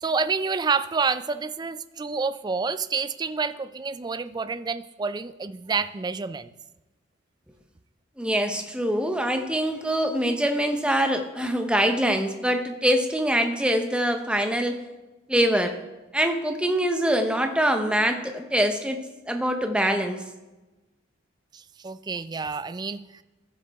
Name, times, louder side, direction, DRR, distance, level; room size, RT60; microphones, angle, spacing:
voice 1, 0.0-6.5 21.5-23.0, right 4 dB, 20° right, 13 dB, 0.3 m, -28 dB
voice 2, 8.2-14.8 15.3-15.7 16.1-20.2, equal, 5° right, 5 dB, 0.8 m, -24 dB
15.0 x 7.4 x 3.5 m, 1.1 s
head